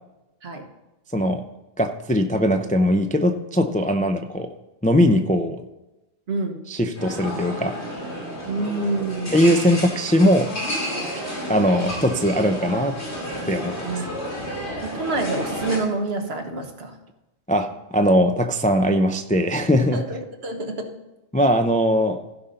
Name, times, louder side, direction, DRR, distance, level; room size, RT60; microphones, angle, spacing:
voice 1, 1.1-1.4 1.8-4.5 4.8-5.6 6.7-7.8 9.3-10.5 11.5-13.0 13.5-14.0 17.5-20.0 21.3-22.2, equal, 15° left, 5 dB, 0.3 m, -20 dB
voice 2, 6.3-6.6 8.5-9.4 13.8-14.0 14.8-17.0 19.9-21.0, right 2 dB, 70° right, 4 dB, 1.4 m, -27 dB
sound 1, 6.9-15.8, equal, 80° left, 2.9 m, -31 dB
15.5 x 5.5 x 4.0 m, 0.99 s
omnidirectional pair, 1.1 m